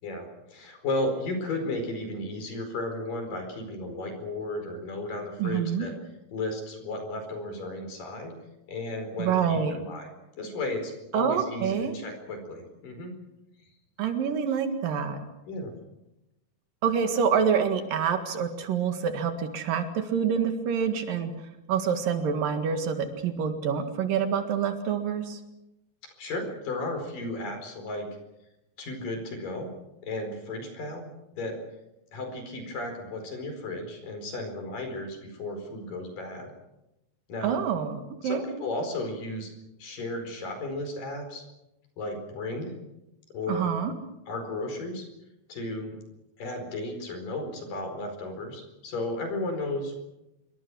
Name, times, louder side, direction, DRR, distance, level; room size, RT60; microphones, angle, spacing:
voice 1, 0.0-5.9 6.3-8.3 8.7-10.1 10.4-13.1 15.5-15.7 26.2-28.1 28.8-29.7 30.0-31.1 31.4-31.6 32.1-36.5 37.3-37.6 38.2-39.5 39.8-41.4 42.0-42.7 43.3-43.7 44.3-45.1 45.5-46.0 46.4-50.0, left 2 dB, 80° left, 6 dB, 6.3 m, -34 dB
voice 2, 5.4-5.9 9.2-9.8 11.1-11.9 14.0-15.2 16.8-21.3 21.7-25.4 37.4-38.4 43.5-43.9, right 7 dB, 90° right, 6 dB, 3.6 m, -27 dB
26.5 x 23.5 x 6.2 m, 0.91 s
omnidirectional pair, 3.8 m